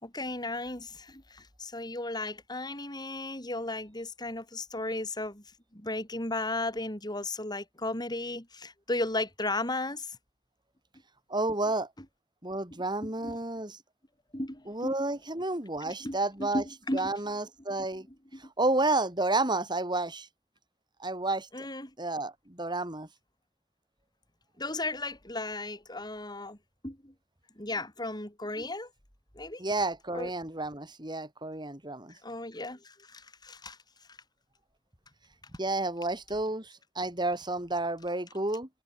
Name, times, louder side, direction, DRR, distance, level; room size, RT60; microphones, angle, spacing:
voice 1, 0.0-5.4 5.7-10.1 13.0-13.3 14.3-14.9 16.0-17.1 18.3-18.4 21.5-21.9 24.6-26.6 26.8-27.1 27.6-28.9 29.4-29.6 30.1-30.3 32.2-32.8 33.1-33.8, left 2 dB, 20° left, 6.1 m, -35 dB
voice 2, 11.3-11.9 12.4-13.8 14.7-16.6 16.9-18.1 18.4-20.3 21.0-21.7 22.0-23.1 29.6-32.1 35.6-38.7, right 2 dB, 25° right, 5.3 m, -31 dB
head